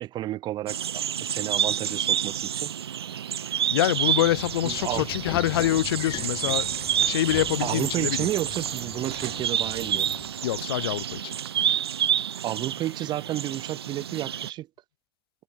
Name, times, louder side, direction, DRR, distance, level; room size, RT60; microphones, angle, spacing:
voice 1, 0.0-2.7 4.6-5.1 7.6-10.1 12.4-14.7, right 14 dB, 35° right, 0.5 m, -31 dB
sound 1, 0.7-14.5, right 9 dB, 80° right, 0.8 m, -29 dB
voice 2, 3.7-6.7 7.0-8.3 10.4-11.3, left 14 dB, 70° left, 0.5 m, -25 dB
Train / Sliding door, 3.9-10.4, left 13 dB, 35° left, 1.3 m, -41 dB
sound 2, 6.2-11.0, right 27 dB, 55° right, 5.6 m, -46 dB
hypercardioid pair, 95°, 13 cm